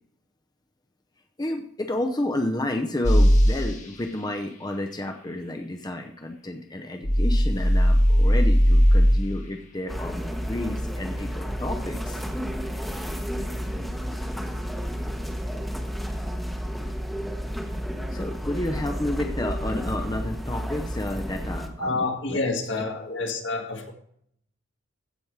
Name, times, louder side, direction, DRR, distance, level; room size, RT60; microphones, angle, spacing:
voice 1, 1.4-12.2 18.1-22.0 22.3-22.4, left 1 dB, 20° left, 4 dB, 0.6 m, -31 dB
sound 1, 3.0-3.6 7.0-9.2, equal, 35° left, 1.4 m, -17 dB
sound 2, 9.9-21.7, equal, ahead, 1.0 m, -31 dB
voice 2, 21.8-23.9, left 3 dB, 60° left, 4 dB, 1.6 m, -28 dB
15.5 x 5.2 x 4.6 m, 0.69 s
head